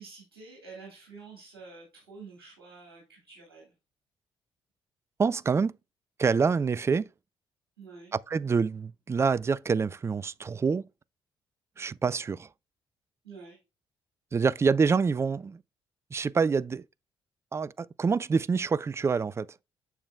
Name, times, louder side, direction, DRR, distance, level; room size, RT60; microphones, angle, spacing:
voice 1, 0.0-3.7 7.8-8.1 13.2-13.6, right 4 dB, 75° right, 2.1 m, -48 dB
voice 2, 5.2-5.7 6.2-7.1 8.1-10.8 11.8-12.5 14.3-15.6 16.1-16.8 17.5-19.5, right 5 dB, 20° right, 0.3 m, -26 dB
7.1 x 6.9 x 2.3 m
figure-of-eight pair, 40°, 12 cm